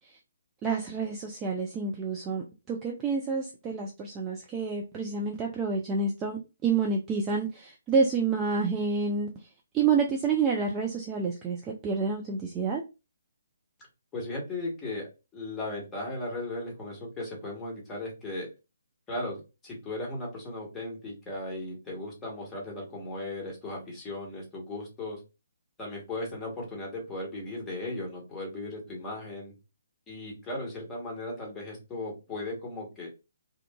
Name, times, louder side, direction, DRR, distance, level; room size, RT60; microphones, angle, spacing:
voice 1, 0.6-9.3 9.7-12.8, right 5 dB, 15° right, 0.4 m, -28 dB
voice 2, 14.1-15.1 15.3-18.5 19.1-25.2 25.8-29.5 30.1-33.1, left 2 dB, 10° left, 1.1 m, -37 dB
2.7 x 2.3 x 2.3 m
figure-of-eight pair, 135°, 0 cm